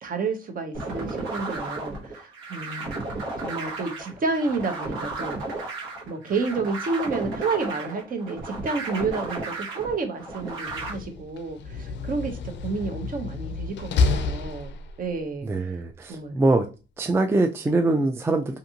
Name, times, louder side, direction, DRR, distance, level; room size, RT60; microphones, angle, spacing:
voice 1, 0.0-2.9 3.4-5.4 6.1-15.5 16.1-16.4, right 4 dB, 45° right, 0.8 m, -30 dB
sound 1, 0.7-10.9, right 2 dB, 85° right, 1.1 m, -34 dB
Slam, 10.5-15.2, left 4 dB, 65° left, 0.4 m, -29 dB
voice 2, 15.4-16.7 17.0-18.6, right 2 dB, 10° right, 0.3 m, -23 dB
2.5 x 2.5 x 2.8 m
cardioid pair, 90°, 20 cm